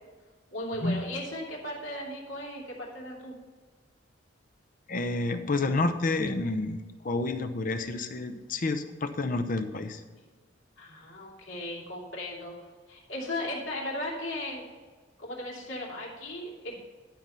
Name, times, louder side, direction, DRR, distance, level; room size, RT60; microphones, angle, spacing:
voice 1, 0.5-3.3 10.8-12.6 12.9-14.6 15.2-16.8, left 1 dB, 85° left, -3 dB, 2.8 m, -36 dB
voice 2, 4.9-6.8 7.0-10.0, left 2 dB, 45° left, 8 dB, 0.7 m, -29 dB
12.0 x 5.3 x 5.6 m, 1.4 s
head